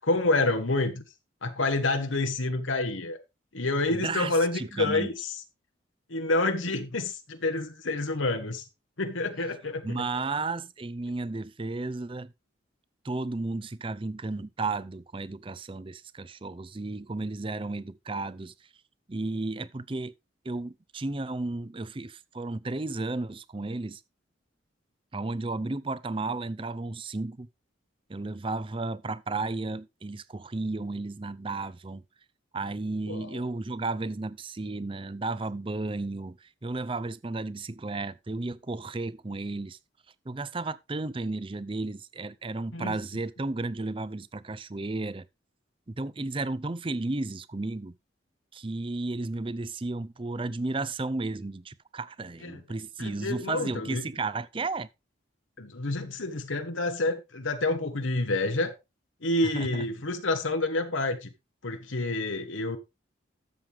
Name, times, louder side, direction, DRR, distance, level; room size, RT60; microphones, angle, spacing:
voice 1, 0.0-1.0 1.4-3.2 3.5-5.4 6.1-8.6 9.0-10.0 33.1-33.4 42.7-42.9 52.4-52.6 53.0-54.0 55.6-58.7 59.2-61.3 61.6-62.8, left 2 dB, 85° left, 1.3 m, -28 dB
voice 2, 3.9-5.1 9.8-12.3 13.0-18.5 19.1-20.1 20.4-24.0 25.1-27.5 28.1-32.0 32.5-39.8 40.3-45.3 45.9-48.0 48.5-54.9 59.5-59.8, right 3 dB, 25° right, 0.5 m, -33 dB
13.0 x 7.6 x 3.5 m
head